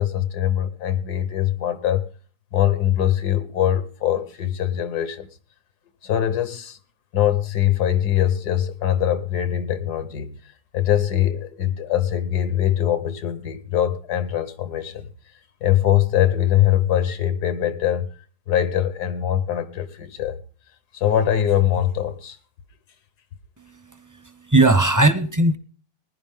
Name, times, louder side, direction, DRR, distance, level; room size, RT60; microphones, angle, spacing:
voice 1, 0.0-2.0 2.5-5.3 6.0-6.8 7.1-10.4 10.7-15.1 15.6-18.1 18.5-20.4 20.9-22.4, left 11 dB, 90° left, 1.6 m, -22 dB
voice 2, 23.6-25.6, right 2 dB, 25° right, 0.4 m, -19 dB
19.5 x 10.5 x 3.7 m
omnidirectional pair, 1.7 m